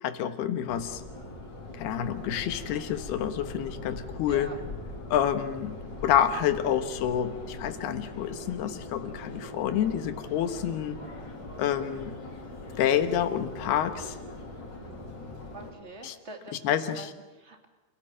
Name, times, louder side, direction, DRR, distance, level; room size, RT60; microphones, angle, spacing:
voice 1, 0.0-1.0 1.8-4.5 5.1-11.0 11.6-12.1 12.8-14.2 16.0-16.1 16.6-17.1, left 9 dB, 85° left, 9 dB, 3.4 m, -28 dB
Subway metro underground, 0.7-15.7, left 2 dB, 30° left, 4.1 m, -41 dB
voice 2, 15.5-17.6, right 2 dB, 20° right, 4 dB, 2.4 m, -45 dB
28.0 x 17.5 x 8.9 m, 1.2 s
omnidirectional pair, 4.5 m